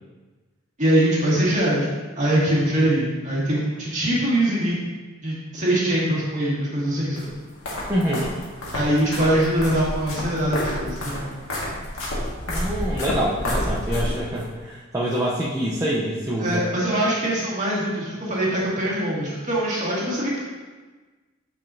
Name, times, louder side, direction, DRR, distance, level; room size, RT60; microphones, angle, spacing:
voice 1, 0.8-1.9 2.2-4.8 5.2-7.2 8.7-11.2 16.4-20.4, right 1 dB, 35° right, -6 dB, 2.0 m, -22 dB
sound 1, 7.2-14.5, left 1 dB, 80° left, 1.8 m, -29 dB
voice 2, 7.9-8.3 12.5-16.6, equal, 15° right, -6 dB, 0.6 m, -25 dB
9.0 x 4.9 x 2.6 m, 1.3 s
head